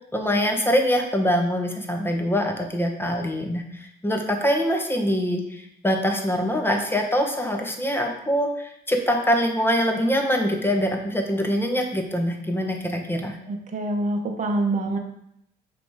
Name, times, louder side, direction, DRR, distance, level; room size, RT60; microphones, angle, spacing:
voice 1, 0.1-13.4, equal, 10° left, 2 dB, 1.2 m, -24 dB
voice 2, 13.5-15.0, right 2 dB, 40° right, 2 dB, 1.0 m, -25 dB
7.9 x 3.3 x 4.7 m, 0.75 s
cardioid pair, 90°, 20 cm